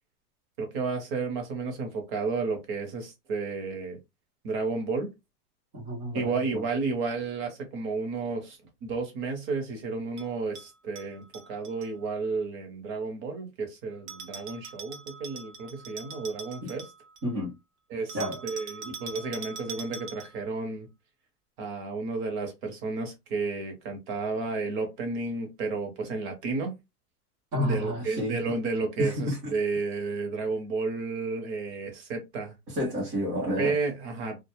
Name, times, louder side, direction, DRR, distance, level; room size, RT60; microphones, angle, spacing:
voice 1, 0.6-4.0 4.4-5.1 6.1-16.9 17.9-20.9 21.6-26.7 27.6-32.5 33.6-34.4, right 4 dB, 35° right, 0.7 m, -32 dB
voice 2, 5.7-6.6 16.6-16.7 17.2-17.5 18.1-18.4 27.5-28.4 29.0-29.5 32.7-33.7, equal, 15° right, 0.4 m, -30 dB
Bell, 10.2-11.9 14.1-17.3 18.1-20.5, right 5 dB, 80° right, 0.9 m, -43 dB
2.2 x 2.0 x 2.8 m
supercardioid pair, 150°, 47 cm